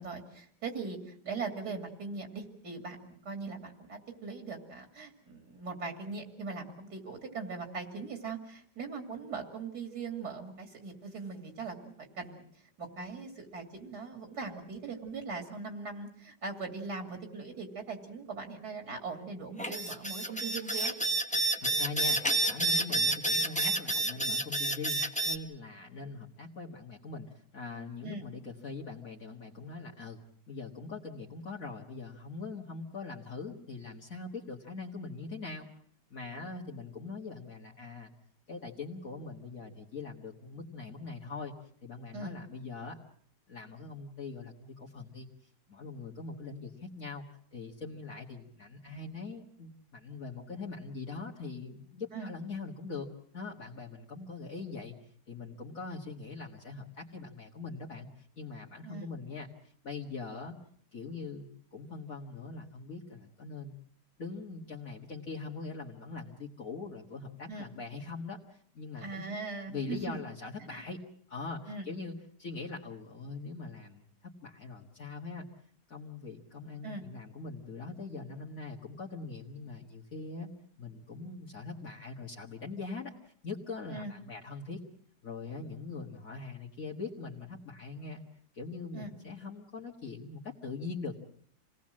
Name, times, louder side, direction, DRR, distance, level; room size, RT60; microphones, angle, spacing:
voice 1, 0.0-12.5 12.8-20.9 28.0-28.3 42.1-42.4 52.1-52.3 58.8-59.1 67.5-67.7 69.0-70.1 70.7-70.8 71.7-71.9 76.8-77.0 83.9-84.1 88.9-89.1, right 4 dB, 70° right, 4 dB, 3.2 m, -40 dB
sound 1, 19.6-25.4, right 2 dB, 5° left, 1.0 m, -29 dB
voice 2, 21.6-22.2 22.4-30.2 30.5-35.7 36.1-38.1 38.5-41.5 41.8-43.0 43.5-45.3 45.7-47.2 47.5-53.1 53.3-59.5 59.8-60.6 60.9-63.7 64.2-69.4 69.7-71.0 71.3-74.0 74.4-75.5 75.9-80.5 80.8-84.8 85.2-88.2 88.5-91.2, left 4 dB, 55° left, -3 dB, 2.1 m, -42 dB
27.5 x 18.5 x 7.5 m, 0.62 s
omnidirectional pair, 1.8 m